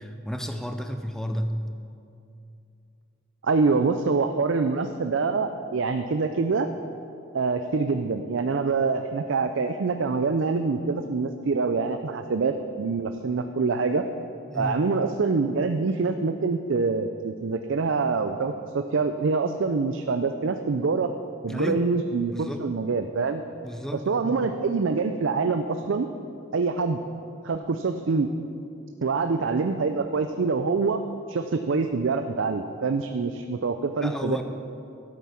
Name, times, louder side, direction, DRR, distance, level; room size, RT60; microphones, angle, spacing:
voice 1, 0.0-1.6 14.5-14.8 21.5-21.9 22.3-22.6 23.6-24.5 34.0-34.4, equal, ahead, 6 dB, 0.5 m, -32 dB
voice 2, 3.4-6.7 7.3-14.0 14.5-21.1 21.4-23.4 23.9-26.1 26.5-27.0 27.4-28.3 29.0-31.0 31.3-34.4, right 4 dB, 65° right, 7 dB, 0.5 m, -25 dB
12.5 x 8.4 x 5.8 m, 2.6 s
head